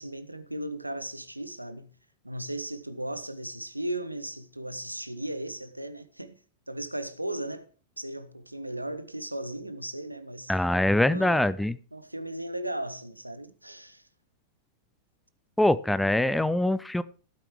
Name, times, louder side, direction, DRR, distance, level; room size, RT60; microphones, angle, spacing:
voice 1, 0.0-1.9 2.2-6.4 6.7-7.7 8.0-10.5 11.1-11.5 11.9-14.0, right 1 dB, 85° right, 0.8 m, -36 dB
voice 2, 10.5-11.8 15.6-17.0, left 1 dB, 5° left, 0.5 m, -23 dB
16.0 x 9.1 x 3.2 m
figure-of-eight pair, 90°, 0 cm